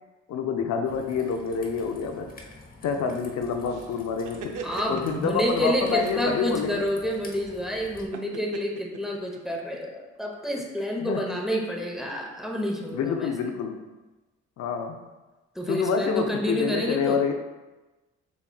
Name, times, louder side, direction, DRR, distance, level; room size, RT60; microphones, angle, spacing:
voice 1, 0.3-2.4 2.8-6.8 11.0-11.3 12.9-13.8 14.6-15.0 15.7-17.3, left 6 dB, 65° left, 5 dB, 0.5 m, -27 dB
Raindrop / Trickle dribble, 0.8-8.1, left 2 dB, 30° left, 0.8 m, -48 dB
sound 1, 3.7-5.4 5.9-6.2 8.1-9.8, right 6 dB, 85° right, 0.6 m, -40 dB
voice 2, 4.6-13.3 15.5-17.2, equal, ahead, 0 dB, 0.8 m, -29 dB
6.9 x 3.1 x 2.3 m, 1.1 s
cardioid pair, 90°, 30 cm